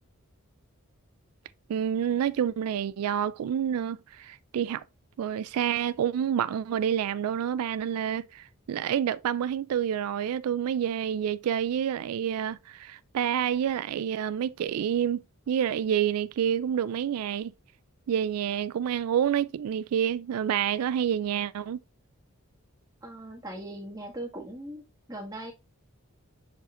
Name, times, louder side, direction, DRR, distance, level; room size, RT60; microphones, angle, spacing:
voice 1, 1.7-4.8 5.2-17.5 18.1-21.8, right 9 dB, 90° right, 0.3 m, -28 dB
voice 2, 23.0-24.8 25.1-25.5, right 1 dB, 15° right, 1.6 m, -39 dB
7.0 x 5.9 x 2.6 m
head